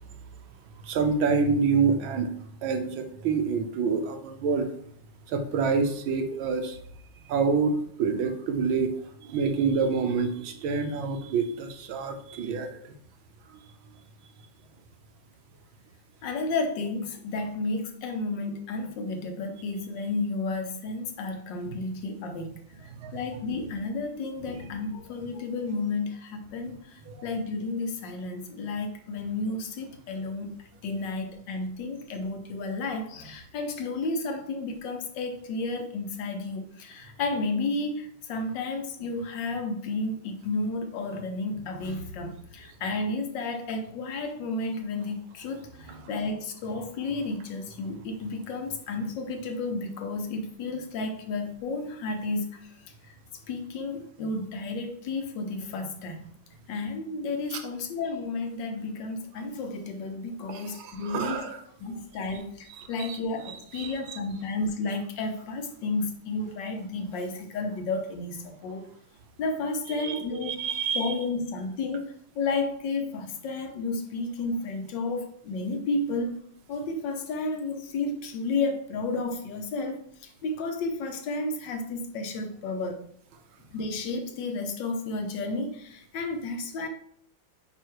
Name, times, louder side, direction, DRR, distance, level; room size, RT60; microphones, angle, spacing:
voice 1, 0.8-2.3 2.6-4.7 5.3-6.8 7.3-8.9 9.2-12.8 23.0-23.2 27.0-27.2 45.9-46.0 57.5-57.6 60.5-61.6 62.7-63.2 63.4-64.2 69.9-71.1, right 5 dB, 75° right, 6 dB, 1.5 m, -27 dB
voice 2, 16.2-22.6 23.1-30.5 30.8-52.6 53.5-56.3 56.7-61.4 61.8-68.9 69.4-70.7 70.9-76.4 76.7-80.0 80.4-83.0 83.7-86.9, left 3 dB, 65° left, 6 dB, 1.5 m, -32 dB
9.1 x 3.0 x 4.7 m, 0.65 s
omnidirectional pair, 2.2 m